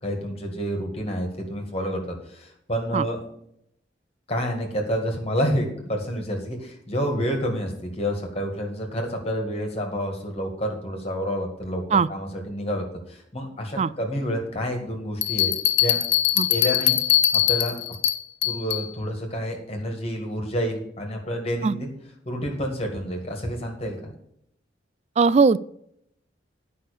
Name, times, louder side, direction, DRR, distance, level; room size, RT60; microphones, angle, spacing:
voice 1, 0.0-3.3 4.3-16.0 16.5-17.0 17.5-18.0 18.4-21.9 22.3-24.1, equal, 30° left, 2 dB, 2.0 m, -29 dB
Bell, 15.2-18.9, left 12 dB, 75° left, 1.0 m, -22 dB
voice 2, 25.2-25.6, right 5 dB, 35° right, 19 dB, 0.3 m, -19 dB
11.0 x 5.6 x 6.8 m, 0.74 s
head